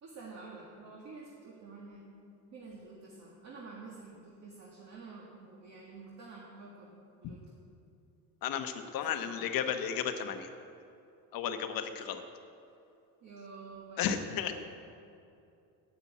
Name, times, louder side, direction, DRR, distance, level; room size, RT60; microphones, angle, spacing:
voice 1, 0.0-2.1 2.5-6.9 7.2-7.4 9.0-9.4 13.2-14.2, right 3 dB, 40° right, -3 dB, 1.8 m, -49 dB
voice 2, 8.4-10.5 11.3-12.2 14.0-14.6, left 8 dB, 55° left, 7 dB, 1.1 m, -33 dB
10.0 x 9.0 x 8.4 m, 2.6 s
cardioid pair, 160°, 41 cm